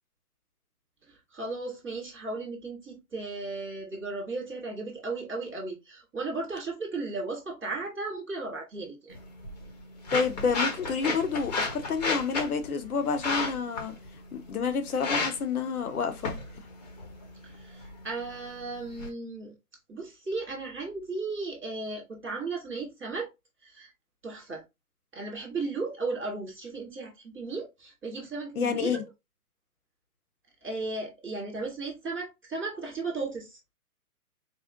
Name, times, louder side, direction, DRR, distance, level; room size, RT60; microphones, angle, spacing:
voice 1, 1.1-9.2 17.4-19.5 19.9-23.3 23.6-23.9 24.2-24.6 25.1-29.0 30.6-33.6, right 3 dB, 5° right, 0.5 m, -35 dB
sound 1, 9.1-19.1, left 3 dB, 30° left, 0.9 m, -34 dB
voice 2, 10.1-13.9 14.3-16.4 28.6-29.0, left 5 dB, 70° left, 1.1 m, -29 dB
4.2 x 2.1 x 3.7 m
hypercardioid pair, 155°, 45 cm